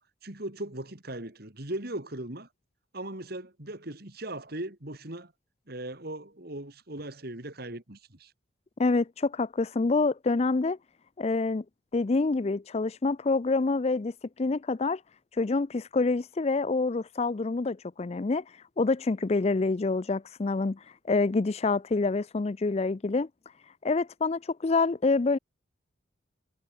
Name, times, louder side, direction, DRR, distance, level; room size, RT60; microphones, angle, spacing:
voice 1, 0.0-2.5 2.9-5.3 5.7-8.3, right 1 dB, 50° right, 3.0 m, -38 dB
voice 2, 8.8-10.8 11.2-11.6 11.9-15.0 15.4-18.4 18.8-20.8 21.0-23.3 23.8-25.4, left 3 dB, 30° left, 0.4 m, -27 dB
head